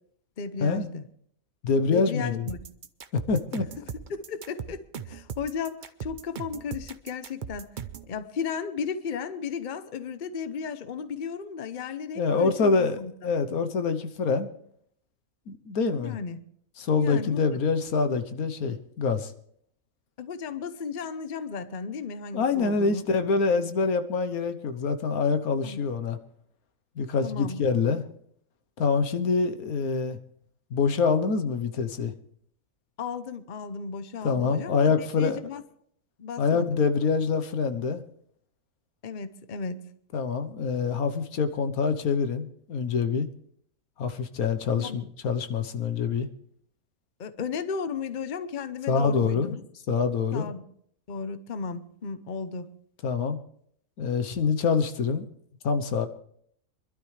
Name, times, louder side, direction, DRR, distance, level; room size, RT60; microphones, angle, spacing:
voice 1, 0.4-1.0 1.9-2.6 4.1-7.7 8.1-13.1 16.0-16.4 17.0-17.6 20.2-23.0 25.6-25.8 27.2-27.6 33.0-35.6 36.2-36.8 39.0-39.8 44.7-45.0 47.2-49.6 50.3-50.6 51.1-52.7, left 6 dB, 40° left, 11 dB, 0.8 m, -34 dB
voice 2, 1.6-2.5 3.3-3.7 12.1-13.0 13.2-14.5 15.5-16.2 16.8-19.3 22.3-26.2 27.0-28.0 28.8-30.2 30.7-32.1 34.2-35.4 36.4-38.0 40.1-43.3 44.0-46.3 48.9-49.6 49.9-50.5 53.0-53.4 54.0-55.2 55.6-56.1, left 5 dB, 85° left, 9 dB, 1.5 m, -25 dB
sound 1, 2.5-8.1, right 7 dB, 45° right, 0.7 m, -39 dB
24.5 x 12.5 x 3.3 m, 0.65 s
omnidirectional pair, 1.5 m